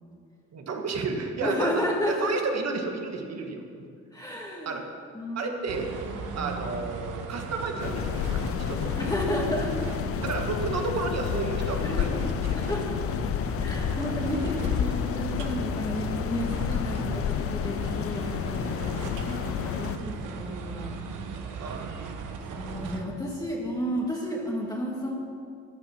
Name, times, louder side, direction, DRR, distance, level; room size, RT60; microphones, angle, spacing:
voice 1, 0.5-3.9 4.6-4.8 5.3-5.9 6.3-9.1 10.2-12.1 12.5-12.6 13.1-13.2 21.6-22.0, right 4 dB, 60° right, 3 dB, 1.7 m, -32 dB
voice 2, 1.4-2.3 4.1-4.8 5.1-5.5 6.1-6.6 9.0-9.9 11.8-13.0 13.6-21.0 22.5-25.1, equal, 10° left, -3 dB, 1.8 m, -32 dB
sound 1, 5.7-23.0, right 4 dB, 85° right, 1.2 m, -37 dB
sound 2, 7.8-20.0, left 11 dB, 50° left, 0.4 m, -30 dB
13.5 x 8.8 x 5.9 m, 2.3 s
cardioid pair, 90°, 30 cm